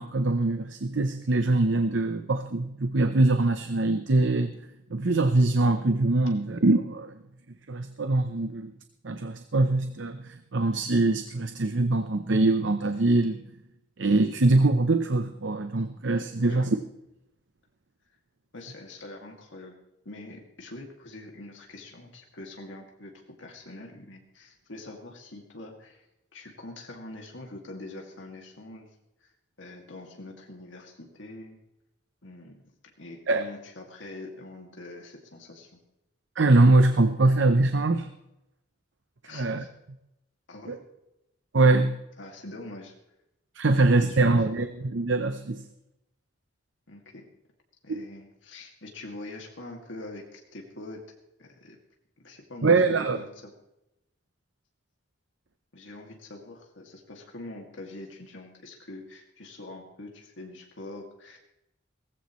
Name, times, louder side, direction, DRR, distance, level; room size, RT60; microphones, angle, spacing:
voice 1, 0.0-4.6 4.9-7.2 7.7-8.7 9.0-13.5 14.0-16.8 33.3-33.4 36.4-38.1 39.3-39.6 40.7-40.8 41.5-42.0 43.5-45.6 47.9-48.0 52.6-53.2, right 2 dB, 75° right, 9 dB, 0.8 m, -23 dB
voice 2, 18.5-19.8 20.0-26.1 26.3-28.9 29.2-29.3 29.6-31.6 32.2-32.6 33.0-35.8 39.2-39.7 40.5-40.8 42.2-42.9 43.7-44.4 46.9-47.2 47.8-51.0 51.4-51.8 52.2-53.5 55.7-61.4, left 2 dB, 80° left, 1 dB, 2.3 m, -44 dB
18.5 x 15.5 x 3.1 m, 0.87 s
head